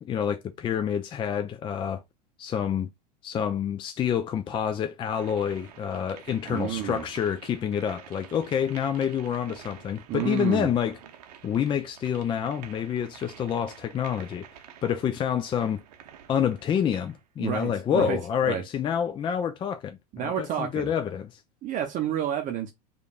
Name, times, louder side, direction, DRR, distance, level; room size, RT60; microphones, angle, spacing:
voice 1, 0.0-2.0 2.4-2.9 3.2-11.0 11.4-14.5 14.8-15.8 16.3-21.4, left 8 dB, 25° left, 0.4 m, -28 dB
sound 1, 5.2-17.2, right 9 dB, 75° right, 0.7 m, -49 dB
voice 2, 6.5-7.0 10.1-10.7 17.4-18.2 18.4-18.6 20.1-20.9 21.6-22.7, right 10 dB, 40° right, 0.7 m, -30 dB
5.0 x 2.5 x 2.4 m
hypercardioid pair, 95°, 21 cm